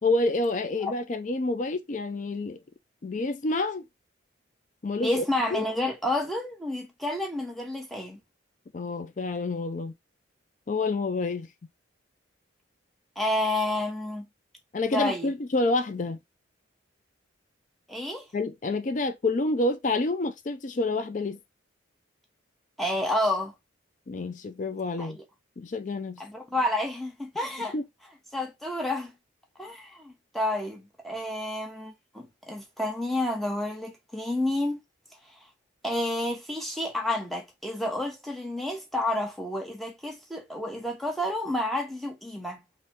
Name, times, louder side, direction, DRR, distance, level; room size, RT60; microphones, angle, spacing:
voice 1, 0.0-2.6 3.0-3.8 4.8-5.2 5.5-5.7 8.7-9.9 10.7-11.5 14.7-16.2 18.3-21.4 24.1-25.2 25.6-26.2 27.7-27.8, left 2 dB, 40° left, 0.4 m, -28 dB
voice 2, 5.0-8.2 13.2-14.3 14.9-15.3 17.9-18.2 22.8-23.5 25.0-25.2 26.2-27.7 28.3-29.1 29.6-34.8 35.8-42.6, left 1 dB, ahead, 0.7 m, -30 dB
3.3 x 2.6 x 4.2 m
head